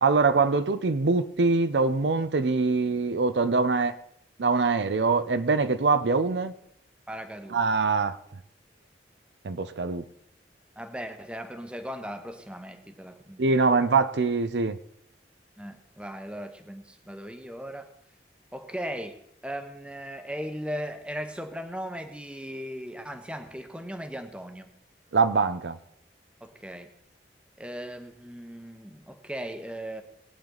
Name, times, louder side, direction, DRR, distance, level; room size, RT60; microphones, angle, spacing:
voice 1, 0.0-3.9 4.4-6.5 7.5-8.2 9.4-10.0 13.4-14.8 25.1-25.8, right 4 dB, 80° right, 12 dB, 0.6 m, -23 dB
voice 2, 7.1-7.6 10.8-13.6 15.6-17.9 18.5-19.2 19.4-24.7 26.4-26.9 27.6-30.0, equal, 5° right, 7 dB, 0.9 m, -38 dB
19.5 x 8.8 x 3.9 m, 0.74 s
head